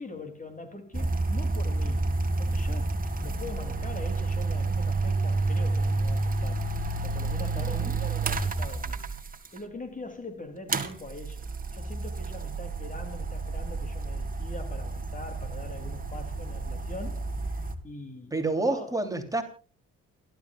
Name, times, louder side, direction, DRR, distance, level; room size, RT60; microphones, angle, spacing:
voice 1, 0.0-2.1 2.4-6.6 7.0-19.0, left 2 dB, 25° left, 3.0 m, -43 dB
sound 1, 0.9-9.6 10.7-17.7, right 3 dB, 30° right, 2.2 m, -30 dB
voice 2, 18.3-19.4, right 2 dB, 10° right, 3.2 m, -28 dB
29.5 x 13.0 x 2.4 m
cardioid pair, 90°, 30 cm